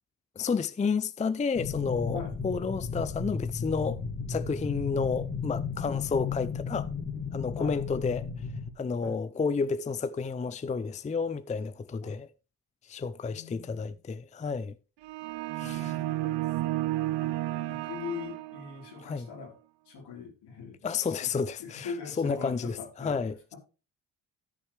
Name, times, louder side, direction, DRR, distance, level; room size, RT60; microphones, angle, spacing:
voice 1, 0.4-4.0 4.3-6.9 7.3-8.3 8.8-12.3 12.8-14.7 15.6-16.0 19.0-19.3 20.8-23.5, left 5 dB, 15° left, 0.5 m, -31 dB
sound 1, 1.6-8.7, left 5 dB, 35° left, 2.3 m, -34 dB
voice 2, 5.8-6.3 7.6-7.8 9.0-9.2 12.0-12.1 13.3-14.0 15.6-16.1 16.9-17.3 17.7-19.5 19.9-21.3 21.6-23.2, left 5 dB, 70° left, 4.0 m, -42 dB
sound 2, 15.0-19.0, right 16 dB, 80° right, 0.7 m, -32 dB
14.0 x 6.3 x 3.3 m
supercardioid pair, 70°, 42 cm